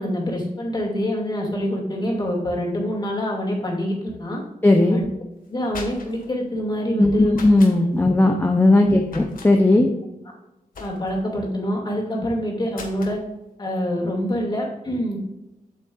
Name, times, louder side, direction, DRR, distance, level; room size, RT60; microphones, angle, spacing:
voice 1, 0.0-4.4 4.9-5.1 5.5-7.4 8.8-9.1 10.8-13.2 13.6-15.2, equal, 30° left, -2 dB, 2.4 m, -26 dB
voice 2, 4.6-5.0 7.0-9.9, left 2 dB, 15° left, 1 dB, 0.7 m, -16 dB
sound 1, 5.4-6.3 7.3-7.8 9.1-9.5 10.7-11.3 12.7-13.2, left 3 dB, 70° left, 1.7 m, -38 dB
8.4 x 8.2 x 2.5 m, 0.96 s
wide cardioid pair, 155°, 15 cm